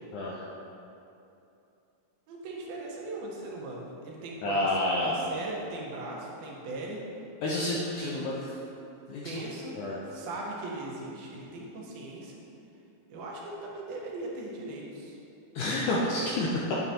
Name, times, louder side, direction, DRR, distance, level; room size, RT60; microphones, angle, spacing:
voice 1, 0.1-0.4 4.4-5.2 7.4-8.5 9.1-9.4 9.7-10.0 15.5-16.8, left 1 dB, 75° left, -5 dB, 1.8 m, -29 dB
voice 2, 2.3-7.0 8.0-8.2 9.2-9.8 10.1-12.3 13.1-15.1, right 2 dB, 75° right, -2 dB, 2.9 m, -39 dB
9.4 x 8.1 x 2.8 m, 2.7 s
omnidirectional pair, 4.4 m